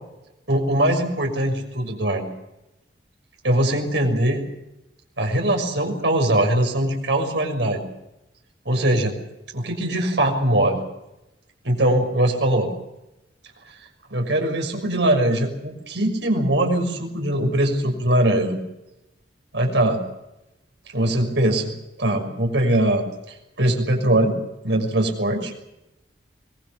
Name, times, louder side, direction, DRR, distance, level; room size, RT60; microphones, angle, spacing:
voice 1, 0.5-2.3 3.4-4.4 5.2-7.8 8.6-9.1 9.5-10.8 11.6-12.7 14.1-18.6 19.5-20.0 20.9-21.7 22.0-24.3 24.6-25.5, right 1 dB, 85° right, 3 dB, 6.3 m, -21 dB
24.5 x 21.0 x 7.4 m, 0.93 s
head